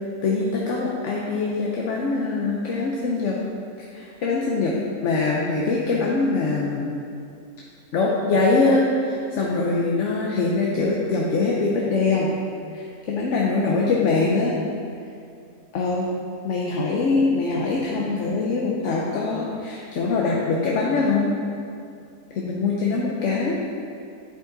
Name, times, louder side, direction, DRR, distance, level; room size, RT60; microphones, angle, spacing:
voice 1, 0.2-3.4 3.8-4.7 5.0-6.9 7.9-12.3 12.7-14.5 15.7-16.1 16.4-21.3 22.3-23.6, left 3 dB, 60° left, -3 dB, 1.0 m, -23 dB
9.6 x 5.0 x 3.9 m, 2.5 s
omnidirectional pair, 1.6 m